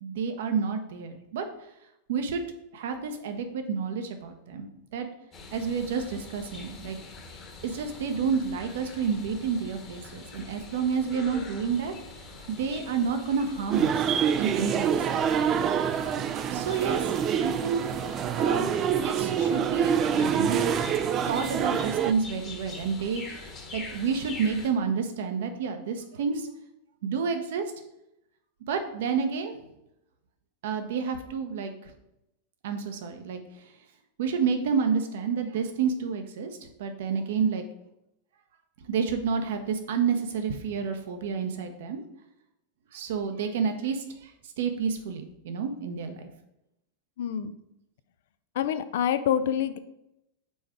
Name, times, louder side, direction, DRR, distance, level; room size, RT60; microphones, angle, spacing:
voice 1, 0.0-1.4 2.1-2.4 2.7-5.1 5.5-7.0 7.6-11.9 12.5-13.9 14.4-15.0 16.5-17.1 17.4-17.9 18.4-18.7 19.0-20.6 21.3-26.5 27.0-27.6 28.7-29.5 30.6-31.7 32.6-33.4 34.2-36.5 36.8-37.6 38.9-42.0 42.9-44.3 44.6-46.3, right 6 dB, 55° right, 6 dB, 0.8 m, -29 dB
sound 1, 5.3-24.7, left 3 dB, 25° left, 1.3 m, -44 dB
sound 2, 13.7-22.1, right 8 dB, 30° right, 0.3 m, -26 dB
voice 2, 47.2-47.5 48.6-49.8, left 9 dB, 55° left, 12 dB, 0.4 m, -26 dB
5.4 x 4.5 x 4.9 m, 0.85 s
figure-of-eight pair, 90°, 0 cm